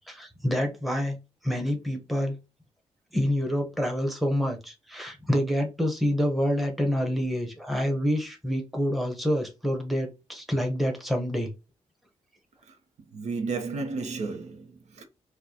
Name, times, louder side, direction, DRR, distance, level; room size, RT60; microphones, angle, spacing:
voice 1, 0.1-1.2 1.4-2.4 3.1-11.5, equal, ahead, 1.0 m, -27 dB
voice 2, 13.1-15.1, right 4 dB, 75° right, 0.8 m, -33 dB
4.5 x 2.3 x 2.8 m
cardioid pair, 100°, 12 cm